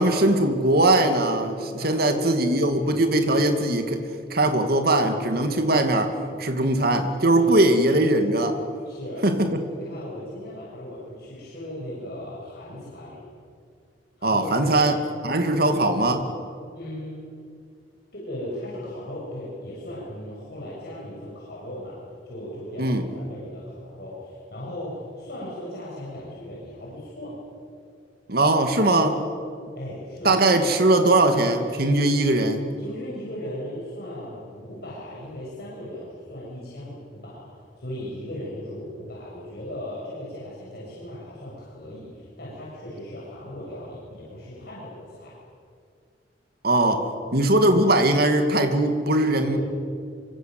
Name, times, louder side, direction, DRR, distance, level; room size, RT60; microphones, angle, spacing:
voice 1, 0.0-4.0 4.3-8.6 9.2-9.6 14.2-14.9 15.2-16.2 22.8-23.0 28.3-29.2 30.2-32.6 46.6-49.6, right 1 dB, 60° right, 6 dB, 2.6 m, -20 dB
voice 2, 1.8-2.3 2.8-3.1 7.3-7.7 8.9-9.3 9.8-13.2 14.2-14.7 15.6-15.8 16.7-17.3 18.1-22.0 22.3-27.4 29.8-30.5 32.8-37.5 37.8-45.3 49.3-49.6, left 1 dB, 60° left, -6 dB, 7.3 m, -37 dB
26.0 x 24.5 x 7.9 m, 2.3 s
head